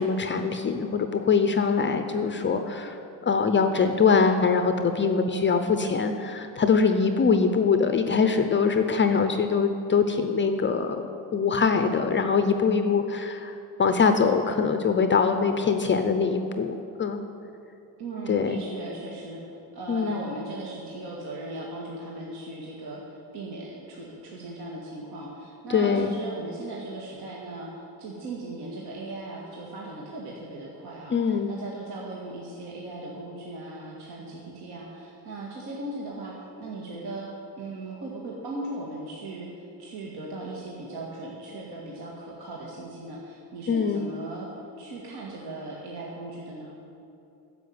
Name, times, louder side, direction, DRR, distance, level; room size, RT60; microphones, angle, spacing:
voice 1, 0.0-3.0 3.2-11.0 11.3-17.2 18.3-18.6 19.9-20.2 25.7-26.1 31.1-31.5 43.7-44.0, left 5 dB, 25° left, 7 dB, 0.6 m, -23 dB
voice 2, 18.0-19.4 19.7-37.3 37.6-44.5 44.8-46.7, right 2 dB, 60° right, -3 dB, 2.1 m, -38 dB
10.5 x 7.4 x 9.5 m, 2.7 s
cardioid pair, 125°, 44 cm